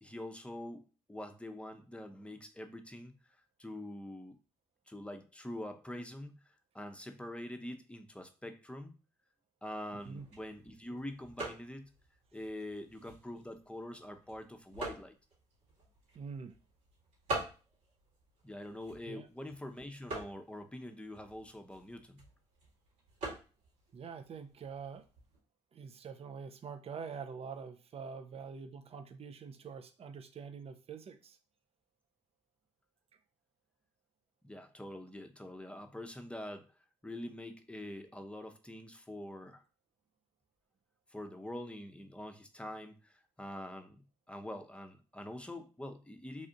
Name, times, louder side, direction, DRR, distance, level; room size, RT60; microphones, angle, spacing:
voice 1, 0.0-3.1 3.6-4.4 4.9-6.4 6.7-9.0 9.6-11.9 12.3-15.2 18.4-22.2 34.4-36.7 37.0-39.6 41.1-44.0 44.3-46.5, left 1 dB, 10° left, 5 dB, 0.7 m, -45 dB
voice 2, 9.9-10.3 16.1-16.6 19.1-19.3 23.9-25.1 25.7-31.4, right 6 dB, 50° right, 8 dB, 0.6 m, -45 dB
sound 1, 9.9-25.4, right 2 dB, 80° right, 2.0 m, -47 dB
3.4 x 2.5 x 3.8 m, 0.34 s
hypercardioid pair, 50°, 13 cm